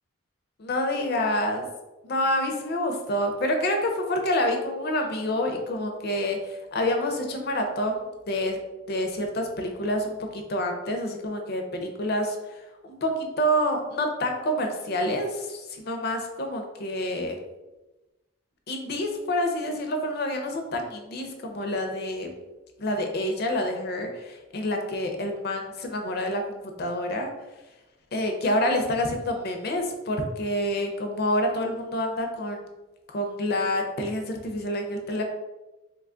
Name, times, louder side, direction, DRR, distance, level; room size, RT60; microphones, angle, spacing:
voice 1, 0.6-1.7 2.0-8.6 8.9-17.4 18.7-22.3 22.8-27.3 28.1-32.6 33.1-35.2, left 1 dB, 50° left, 4 dB, 0.5 m, -28 dB
2.9 x 2.3 x 3.7 m, 1.1 s
head